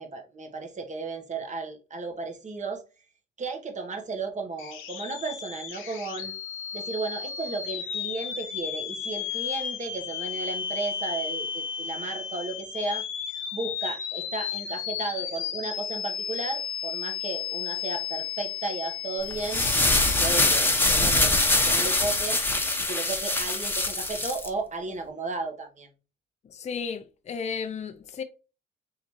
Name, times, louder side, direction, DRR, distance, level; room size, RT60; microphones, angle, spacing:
voice 1, 0.0-2.8 3.4-6.3 6.7-13.0 13.5-19.7 20.2-22.4 22.8-25.9, right 3 dB, 40° right, 1.1 m, -34 dB
sound 1, 4.6-21.3, left 8 dB, 80° left, 0.8 m, -34 dB
sound 2, 19.3-24.5, left 2 dB, 10° left, 0.9 m, -23 dB
voice 2, 26.5-28.2, left 6 dB, 35° left, 0.5 m, -34 dB
3.7 x 3.4 x 3.0 m
cardioid pair, 90°, 20 cm